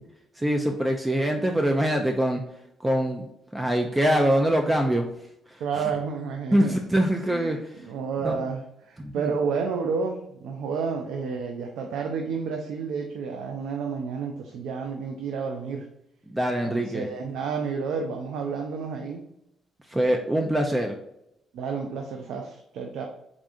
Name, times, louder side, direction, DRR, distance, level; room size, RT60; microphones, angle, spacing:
voice 1, 0.4-2.4 2.8-3.3 3.5-5.1 6.5-7.6 8.2-8.4 9.0-9.3 16.3-17.1 19.9-20.9, right 1 dB, 15° right, 3 dB, 0.4 m, -23 dB
voice 2, 5.6-6.8 7.3-15.9 16.7-19.2 21.5-23.1, right 5 dB, 85° right, 3 dB, 0.4 m, -30 dB
3.6 x 3.5 x 2.5 m, 0.81 s
cardioid pair, 90°, 0 cm